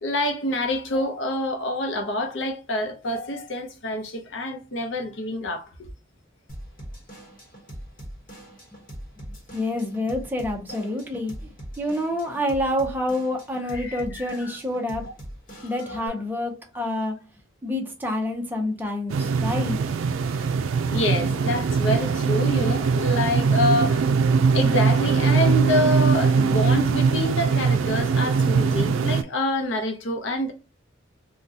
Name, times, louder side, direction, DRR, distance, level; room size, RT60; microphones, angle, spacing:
voice 1, 0.0-5.7 13.7-14.5 15.5-16.1 20.2-20.4 20.9-24.1 24.5-30.5, left 1 dB, 70° left, 0.6 m, -27 dB
Drum kit / Drum, 6.5-16.1, right 1 dB, 45° left, 1.0 m, -42 dB
voice 2, 9.5-11.5 11.8-15.1 15.6-17.1 17.6-19.8, left 1 dB, 10° right, 0.6 m, -27 dB
sound 1, 19.1-29.2, right 5 dB, 90° right, 0.4 m, -21 dB
3.7 x 2.2 x 2.7 m
head